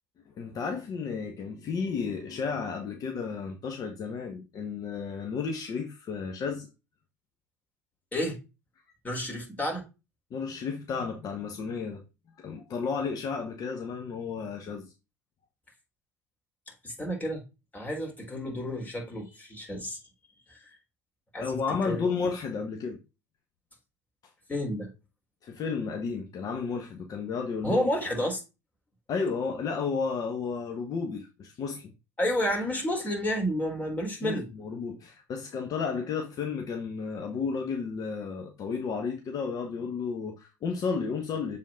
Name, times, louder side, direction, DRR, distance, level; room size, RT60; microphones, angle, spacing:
voice 1, 0.4-6.7 10.3-12.0 12.4-14.9 21.4-23.0 25.4-27.8 29.1-31.9 34.2-41.6, left 5 dB, 45° left, 1.3 m, -32 dB
voice 2, 9.0-9.8 16.8-17.4 17.7-20.0 20.5-20.8 21.3-21.6 21.8-22.3 24.5-24.9 27.6-28.4 32.2-34.5, equal, 20° left, 4.0 m, -30 dB
7.3 x 4.1 x 3.8 m
hypercardioid pair, 75°, 8 cm